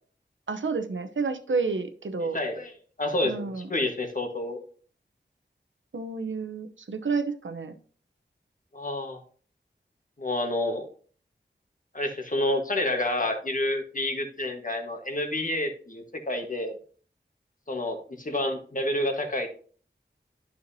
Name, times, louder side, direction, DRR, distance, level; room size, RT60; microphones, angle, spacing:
voice 1, 0.5-2.4 3.2-3.7 5.9-7.8, right 4 dB, 85° right, 7 dB, 0.8 m, -30 dB
voice 2, 2.3-2.7 3.0-4.6 8.7-9.2 10.2-10.9 11.9-16.8 17.7-19.5, left 1 dB, 45° left, 4 dB, 1.5 m, -29 dB
10.5 x 5.8 x 2.8 m, 0.43 s
wide cardioid pair, 65°, 19 cm